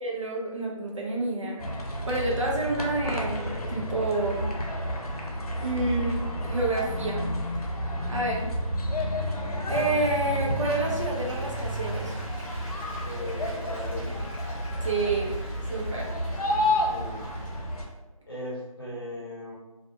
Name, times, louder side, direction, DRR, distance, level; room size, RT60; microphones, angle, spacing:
voice 1, 0.0-1.6 2.1-4.5 5.6-7.3 8.1-8.5 9.6-12.1 14.8-15.4 15.7-16.1, right 2 dB, 60° right, -3 dB, 0.7 m, -29 dB
sound 1, 1.6-17.8, equal, 90° left, 0.6 m, -31 dB
Applause, 10.4-17.9, left 1 dB, 15° left, 1.1 m, -45 dB
voice 2, 13.0-14.1 16.9-17.2 18.3-19.5, left 1 dB, 40° left, -7 dB, 1.0 m, -38 dB
2.5 x 2.2 x 2.7 m, 1.1 s
figure-of-eight pair, 180°, 19 cm